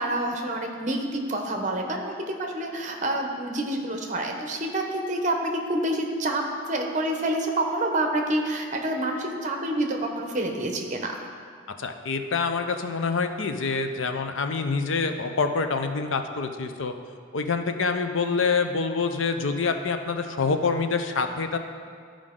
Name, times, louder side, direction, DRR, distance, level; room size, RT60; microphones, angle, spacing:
voice 1, 0.0-6.4 6.7-11.1, right 1 dB, 40° right, 2 dB, 0.9 m, -28 dB
voice 2, 11.8-16.9 17.3-21.6, left 4 dB, 80° left, 7 dB, 0.6 m, -26 dB
12.5 x 5.0 x 3.7 m, 2.1 s
head